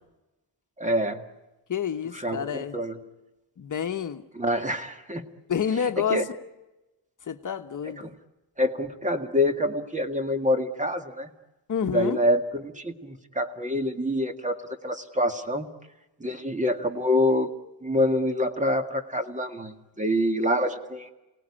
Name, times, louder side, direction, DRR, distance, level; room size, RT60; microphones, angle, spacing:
voice 1, 0.8-1.2 2.1-3.0 4.4-5.2 6.1-6.2 8.6-11.3 11.8-14.6 14.8-15.7 16.2-17.5 17.8-21.1, left 1 dB, 20° right, 2.0 m, -26 dB
voice 2, 1.7-2.8 3.6-4.2 5.5-6.2 7.3-8.1 11.7-12.2, left 8 dB, 50° left, 1.2 m, -28 dB
28.0 x 18.5 x 9.9 m
wide cardioid pair, 120°, 40 cm